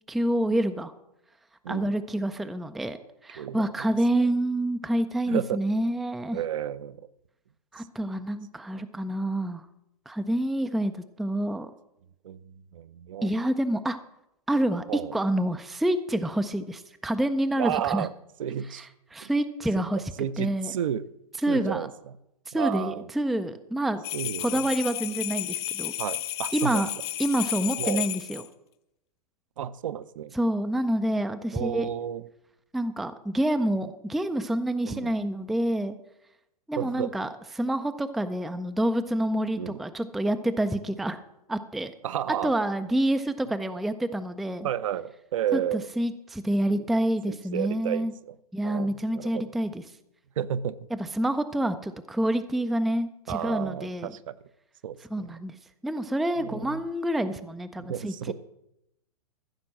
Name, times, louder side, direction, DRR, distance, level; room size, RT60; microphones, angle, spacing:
voice 1, 0.1-0.9 1.7-3.0 3.2-6.4 7.7-9.7 10.1-11.7 13.2-14.0 14.5-14.8 15.1-18.1 19.1-20.0 20.4-20.7 21.4-21.9 22.5-24.0 24.4-25.9 26.5-26.9 27.2-28.4 30.4-31.9 32.7-36.0 36.7-37.3 37.6-41.2 41.5-41.9 42.4-44.7 45.5-45.6 46.0-48.1 48.5-49.8 51.2-54.1 55.1-55.5 55.8-58.1, right 1 dB, ahead, 9 dB, 0.4 m, -27 dB
voice 2, 1.6-2.0 3.4-3.9 5.3-5.6 6.3-7.1 7.8-7.9 12.2-13.3 14.9-15.1 17.6-18.1 18.4-18.9 19.2-19.3 19.8-21.1 21.5-22.1 22.5-23.1 24.1-24.7 26.0-26.8 27.8-28.0 29.6-30.4 31.5-32.3 34.8-35.2 36.8-37.2 39.5-39.8 42.0-42.5 44.6-45.9 47.3-48.3 48.6-49.5 50.4-50.8 53.3-54.4 54.8-55.4 56.4-56.8 57.8-58.3, right 10 dB, 55° right, 14 dB, 0.6 m, -32 dB
sound 1, 24.0-28.5, left 14 dB, 40° left, 0.7 m, -32 dB
14.5 x 5.9 x 7.5 m, 0.84 s
figure-of-eight pair, 110°, 20 cm